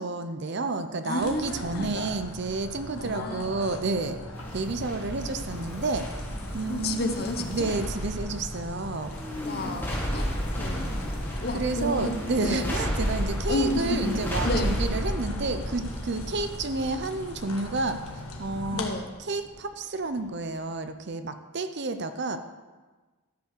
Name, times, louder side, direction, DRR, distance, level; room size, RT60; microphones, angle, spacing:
voice 1, 0.0-4.2 4.5-6.1 6.5-7.1 7.5-9.2 11.5-18.0 18.4-18.9 19.3-22.4, right 3 dB, 50° right, 9 dB, 0.6 m, -30 dB
voice 2, 1.0-1.9 3.0-3.4 6.7-7.7 9.4-10.3 10.6-11.0 11.4-12.7 13.5-14.1 14.4-14.7 18.7-19.1, left 1 dB, 45° left, 6 dB, 0.9 m, -31 dB
sound 1, 1.2-18.9, left 1 dB, 85° left, 1.5 m, -40 dB
sound 2, 4.3-19.8 20.2-20.3, equal, 10° left, 2.0 m, -33 dB
13.0 x 5.4 x 6.7 m, 1.3 s
head